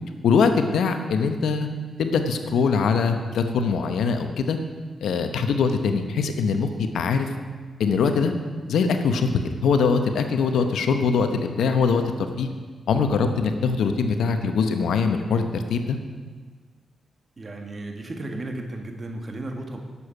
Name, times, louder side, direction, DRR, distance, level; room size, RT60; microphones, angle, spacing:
voice 1, 0.2-1.7 2.0-4.6 5.0-7.3 7.8-8.3 8.7-9.3 9.6-12.5 12.9-16.0, left 5 dB, 80° left, 7 dB, 0.9 m, -22 dB
voice 2, 17.4-19.8, right 2 dB, 40° right, 3 dB, 1.7 m, -34 dB
11.0 x 7.0 x 5.9 m, 1.5 s
supercardioid pair, 55°, 0 cm